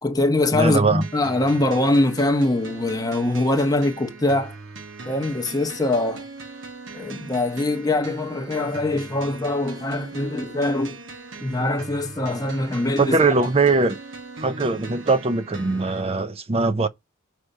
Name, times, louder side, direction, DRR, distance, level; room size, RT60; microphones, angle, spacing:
voice 1, 0.0-4.5 5.1-6.2 6.9-10.9 11.4-13.2, left 2 dB, 20° left, 0.8 m, -23 dB
voice 2, 0.5-1.1 13.0-14.0 14.4-16.9, right 3 dB, 30° right, 0.6 m, -21 dB
sound 1, 1.0-16.0, right 3 dB, 65° right, 1.0 m, -40 dB
6.5 x 4.7 x 5.3 m
head